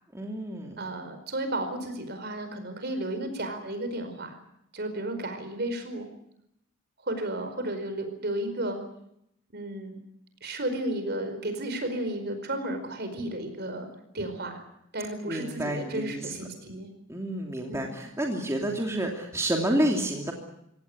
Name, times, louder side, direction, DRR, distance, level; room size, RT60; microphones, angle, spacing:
voice 1, 0.1-0.8 15.3-16.3 17.1-20.3, right 1 dB, 15° right, 1 dB, 2.9 m, -29 dB
voice 2, 0.8-4.4 4.7-6.1 7.0-8.8 9.5-10.0 10.4-13.9 14.1-14.6 14.9-16.9 17.7-17.9, right 1 dB, 50° right, 8 dB, 4.8 m, -33 dB
24.5 x 17.5 x 9.6 m, 0.79 s
head